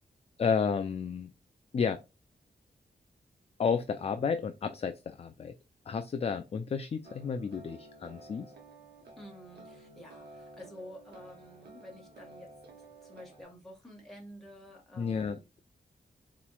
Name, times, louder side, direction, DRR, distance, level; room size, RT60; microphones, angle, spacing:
voice 1, 0.4-1.3 1.7-2.0 3.6-5.5 5.9-8.5 15.0-15.4, left 6 dB, 40° left, 0.4 m, -31 dB
sound 1, 7.0-13.4, right 2 dB, 80° right, 1.2 m, -52 dB
voice 2, 9.2-12.5 13.0-15.4, equal, ahead, 1.5 m, -50 dB
4.1 x 3.0 x 2.2 m
wide cardioid pair, 120°, 17 cm